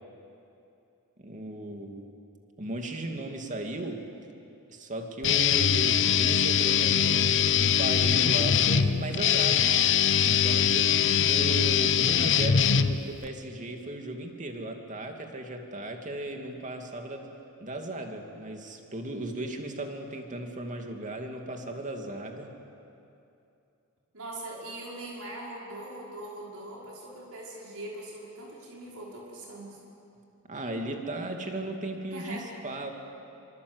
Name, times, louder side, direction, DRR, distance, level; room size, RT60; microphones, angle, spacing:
voice 1, 1.2-2.1 2.6-4.1 4.7-17.3 17.6-22.6 30.5-32.9, right 1 dB, 35° right, 3 dB, 2.6 m, -36 dB
Guitar, 5.2-13.3, left 8 dB, 60° left, 0.8 m, -23 dB
voice 2, 10.9-11.4 24.1-29.8 32.1-32.5, right 1 dB, 80° right, -4 dB, 5.6 m, -41 dB
26.0 x 25.5 x 8.2 m, 2.8 s
head